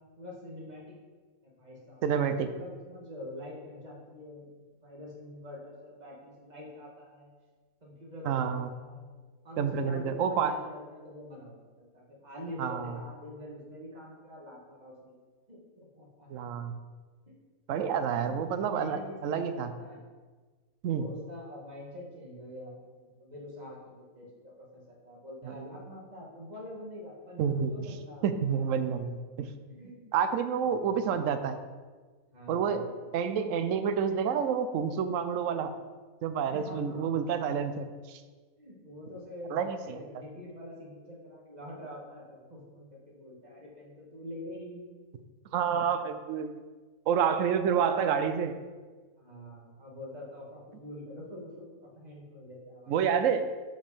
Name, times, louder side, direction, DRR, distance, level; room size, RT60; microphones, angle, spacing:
voice 1, 0.2-1.0 1.4-4.5 4.8-7.3 7.8-9.1 9.4-15.2 15.5-16.5 17.3-17.4 17.9-20.0 20.9-28.8 29.7-30.3 30.6-31.1 32.3-33.2 36.5-37.6 38.6-44.8 47.7-47.9 49.2-53.0, left 1 dB, 30° right, -4 dB, 1.8 m, -45 dB
voice 2, 2.0-2.5 8.3-8.7 9.6-10.5 12.6-12.9 16.3-16.7 17.7-19.7 20.8-21.0 25.4-25.7 27.4-27.7 28.2-29.5 30.1-31.6 32.5-32.8 33.1-35.7 36.2-38.2 39.5-40.0 45.5-46.5 47.1-48.5 52.9-53.4, right 7 dB, 70° right, 9 dB, 0.9 m, -29 dB
5.2 x 5.2 x 5.5 m, 1.4 s
omnidirectional pair, 1.5 m